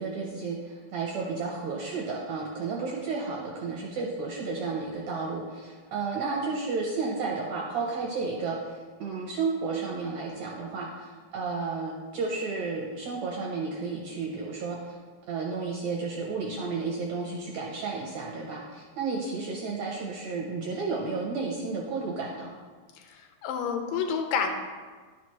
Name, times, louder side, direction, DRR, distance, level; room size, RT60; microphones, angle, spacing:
voice 1, 0.0-15.0 15.3-22.5, right 4 dB, 70° right, -2 dB, 1.8 m, -32 dB
voice 2, 22.9-24.5, left 6 dB, 80° left, 5 dB, 2.4 m, -29 dB
11.0 x 5.9 x 3.2 m, 1.4 s
omnidirectional pair, 4.2 m